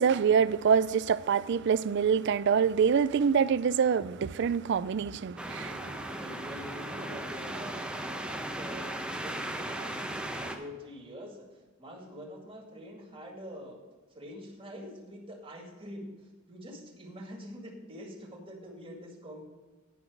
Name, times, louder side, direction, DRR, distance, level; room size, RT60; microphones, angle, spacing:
voice 1, 0.0-5.7, right 6 dB, 60° right, 0.4 m, -25 dB
sound 1, 5.4-10.6, right 1 dB, 5° right, 0.9 m, -37 dB
voice 2, 5.6-10.0 10.3-13.8 14.1-19.4, equal, 25° right, 2.1 m, -45 dB
10.0 x 5.9 x 6.2 m
head